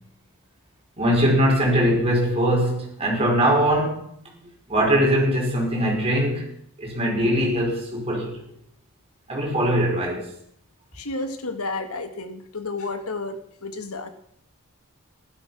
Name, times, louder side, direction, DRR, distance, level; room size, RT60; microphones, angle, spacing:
voice 1, 1.0-4.3 4.7-6.5 6.8-8.4 9.3-10.3, equal, 25° right, 5.8 m, -21 dB
voice 2, 10.9-14.1, left 3 dB, 85° left, 1.9 m, -31 dB
15.5 x 12.5 x 6.1 m
head